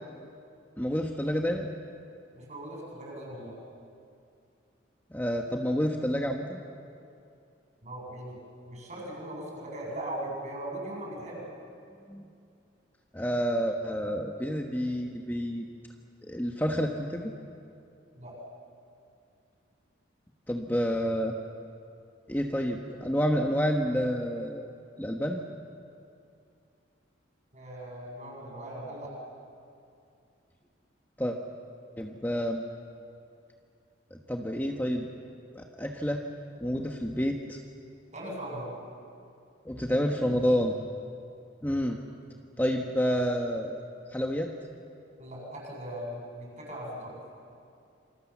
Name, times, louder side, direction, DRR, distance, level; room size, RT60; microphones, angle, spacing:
voice 1, 0.8-1.7 5.1-6.6 12.1-12.3 13.1-15.6 16.3-17.3 20.5-21.3 22.3-24.7 25.0-25.4 31.2-31.4 32.0-32.6 34.1-35.1 35.5-36.2 36.6-37.6 39.6-40.7 41.6-42.0 42.6-43.8 44.1-44.5, equal, 10° left, 2 dB, 1.2 m, -29 dB
voice 2, 2.3-3.6 7.8-8.4 8.7-11.4 18.1-18.3 27.5-29.1 38.1-38.7 45.2-47.2, right 1 dB, 35° right, -2 dB, 7.9 m, -39 dB
27.5 x 26.0 x 7.4 m, 2.5 s
head